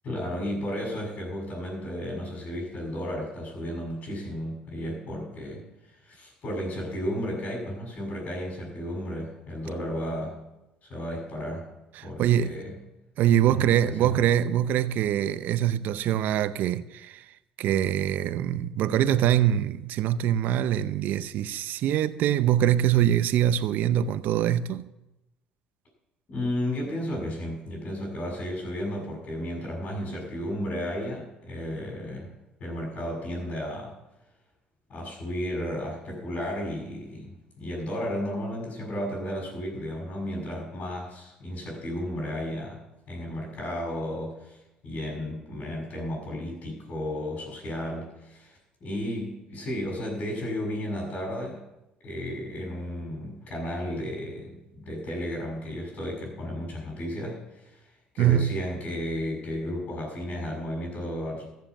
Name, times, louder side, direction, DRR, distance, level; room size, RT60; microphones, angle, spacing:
voice 1, 0.0-5.6 6.0-10.4 10.8-11.7 12.0-12.7 13.5-14.1 26.3-32.3 32.6-33.9 34.9-42.8 43.1-44.6 44.8-51.6 52.0-57.8 58.1-61.5, equal, 55° left, 6.4 m, -33 dB
voice 2, 12.0-12.6 13.2-17.2 17.6-24.9 58.2-58.6, right 11 dB, 70° right, 0.6 m, -24 dB
14.5 x 7.5 x 7.2 m
supercardioid pair, 75°, 3 cm